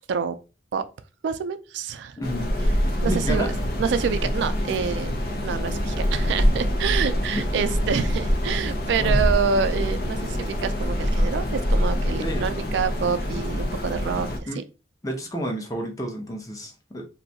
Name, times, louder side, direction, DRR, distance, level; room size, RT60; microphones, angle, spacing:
voice 1, 1.2-2.2 3.0-3.4 3.8-5.1 5.4-14.3 14.5-14.6, right 6 dB, 75° right, 0.3 m, -27 dB
sound 1, 2.2-14.4, equal, 55° left, 0.6 m, -25 dB
voice 2, 2.2-2.5 3.0-3.5 7.3-7.4 7.7-7.8 9.0-9.2 12.2-12.5 14.5-14.6 15.0-17.0, equal, 20° left, 0.7 m, -30 dB
2.6 x 2.3 x 4.0 m
head